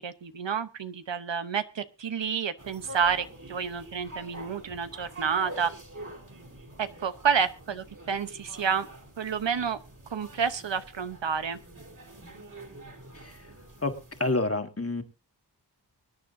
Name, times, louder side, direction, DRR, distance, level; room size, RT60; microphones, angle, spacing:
voice 1, 0.0-5.7 6.8-8.9 9.2-9.8 10.1-11.6, right 7 dB, 85° right, 11 dB, 1.0 m, -29 dB
sound 1, 2.6-14.2, right 1 dB, 45° right, 3.3 m, -46 dB
voice 2, 14.2-15.0, left 2 dB, 35° left, 6 dB, 1.8 m, -28 dB
24.5 x 9.6 x 2.7 m, 0.29 s
wide cardioid pair, 75°, 43 cm